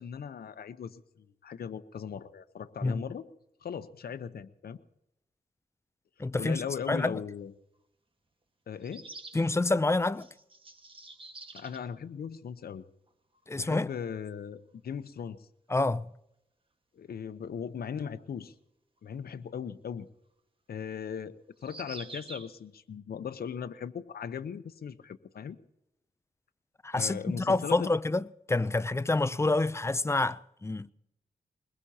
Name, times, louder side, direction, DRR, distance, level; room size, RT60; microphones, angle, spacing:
voice 1, 0.0-3.3 3.6-4.8 6.4-7.5 8.7-9.1 11.5-12.8 13.5-15.5 16.9-18.5 19.0-20.1 20.7-25.6 26.9-27.9, left 7 dB, 80° left, 0.9 m, -38 dB
voice 2, 6.2-6.6 6.9-7.2 9.3-10.3 13.5-13.9 15.7-16.1 26.8-30.9, left 2 dB, 15° left, 0.5 m, -28 dB
sound 1, 7.3-7.4 8.8-9.5 10.2-11.9 13.1-13.2 13.3-13.4 15.9-16.0 19.1-19.2 21.6-22.6, right 3 dB, 35° right, 1.6 m, -47 dB
22.0 x 21.0 x 2.9 m
wide cardioid pair, 95°, 16 cm